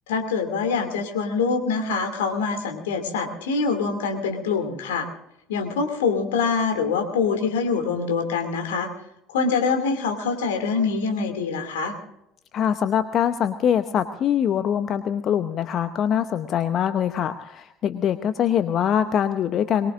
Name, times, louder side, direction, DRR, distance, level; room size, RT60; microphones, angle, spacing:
voice 1, 0.1-5.1 5.5-8.9 9.3-11.9, left 5 dB, 75° left, 5 dB, 2.6 m, -24 dB
voice 2, 12.5-19.9, left 9 dB, 50° left, 10 dB, 0.8 m, -23 dB
23.0 x 20.5 x 2.6 m, 0.83 s
figure-of-eight pair, 60°, 0 cm